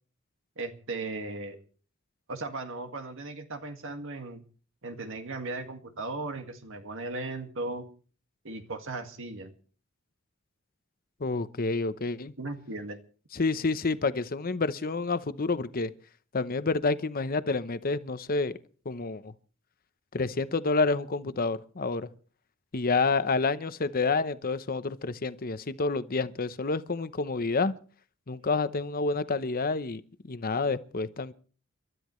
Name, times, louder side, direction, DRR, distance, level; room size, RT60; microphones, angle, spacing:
voice 1, 0.6-1.6 2.3-4.4 4.8-7.8 8.4-9.5 12.4-13.0, right 2 dB, 65° right, 1.9 m, -37 dB
voice 2, 11.2-12.3 13.3-15.9 16.3-18.5 18.8-19.3 20.1-22.1 22.7-27.7 28.3-31.3, left 3 dB, 45° left, 0.8 m, -29 dB
30.0 x 12.5 x 3.2 m
head